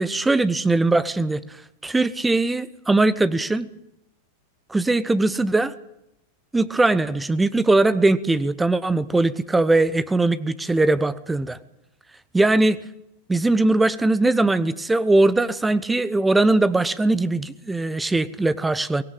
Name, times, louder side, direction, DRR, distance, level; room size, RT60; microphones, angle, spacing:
voice 1, 0.0-1.4 1.8-3.7 4.7-5.7 6.5-11.6 12.3-12.8 13.3-19.0, right 2 dB, 10° right, 16 dB, 1.0 m, -20 dB
23.5 x 18.5 x 7.4 m, 0.87 s
figure-of-eight pair, 90°, 0 cm